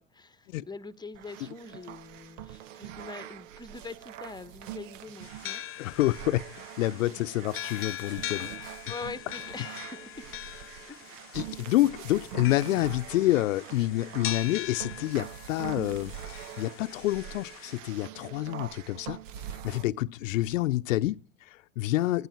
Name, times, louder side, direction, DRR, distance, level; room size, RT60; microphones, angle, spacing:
voice 1, 0.0-5.6 6.9-7.0 8.6-10.0, left 4 dB, 10° left, 1.2 m, -43 dB
sound 1, 1.1-19.8, right 11 dB, 65° right, 1.2 m, -43 dB
sound 2, 5.2-17.8, left 13 dB, 30° left, 0.8 m, -42 dB
voice 2, 5.8-8.5 11.3-19.2 19.5-22.3, left 16 dB, 70° left, 0.8 m, -28 dB
19.5 x 16.5 x 4.5 m
hypercardioid pair, 90°, 41 cm